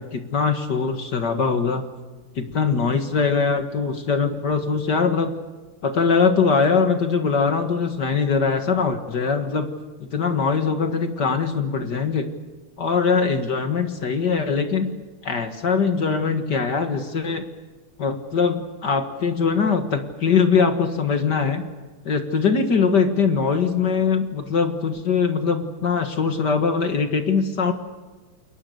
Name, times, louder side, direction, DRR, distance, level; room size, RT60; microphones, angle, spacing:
voice 1, 0.0-1.9 2.4-5.3 5.8-9.7 10.0-12.3 12.8-14.9 15.2-17.4 18.0-21.7 22.0-27.7, left 5 dB, 55° left, 7 dB, 2.2 m, -22 dB
29.5 x 22.0 x 6.9 m, 1.3 s
omnidirectional pair, 2.3 m